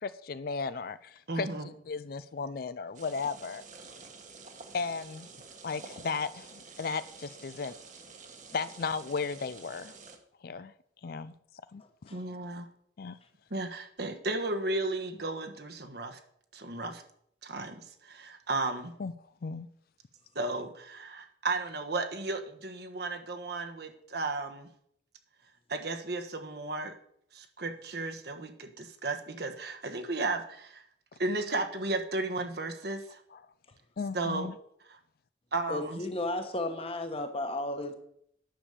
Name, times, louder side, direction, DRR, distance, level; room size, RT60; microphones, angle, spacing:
voice 1, 0.0-3.6 4.7-5.3 5.6-7.7 8.5-9.9 10.4-10.7 11.0-11.3 11.7-11.8 13.0-13.2 19.0-19.1 19.4-19.7 33.3-33.4 34.0-34.6, left 4 dB, 50° left, 0.4 m, -35 dB
voice 2, 1.3-1.7 12.1-12.7 13.5-16.2 16.5-17.0 17.4-18.9 20.3-24.7 25.7-26.9 27.3-30.8 31.2-33.2 34.1-34.5 34.9-35.0 35.5-36.0, right 2 dB, 55° right, 1.3 m, -34 dB
sound 1, 2.9-10.2, right 4 dB, 40° right, 1.4 m, -49 dB
voice 3, 11.8-12.2 35.7-37.9, left 2 dB, 30° left, 1.3 m, -34 dB
10.0 x 7.2 x 6.7 m
head